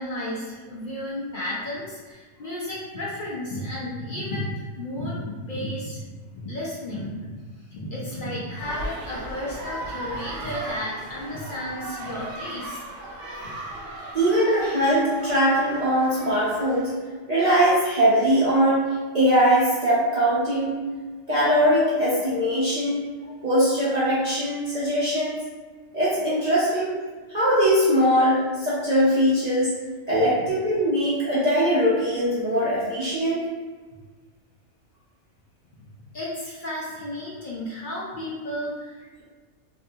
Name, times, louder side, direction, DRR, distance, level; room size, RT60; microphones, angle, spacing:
voice 1, 0.0-6.0 6.3-7.4 7.7-12.8 13.4-13.5 35.8-35.9 36.1-39.2, left 1 dB, 60° left, -6 dB, 0.5 m, -33 dB
sound 1, 8.6-16.9, right 1 dB, 80° right, 1.0 m, -37 dB
voice 2, 14.1-16.9 17.3-18.9 19.1-20.7 21.3-23.0 23.4-25.3 25.9-26.9 27.3-29.7 30.1-33.4, equal, 50° right, -10 dB, 0.5 m, -21 dB
2.6 x 2.2 x 2.6 m, 1.4 s
omnidirectional pair, 1.3 m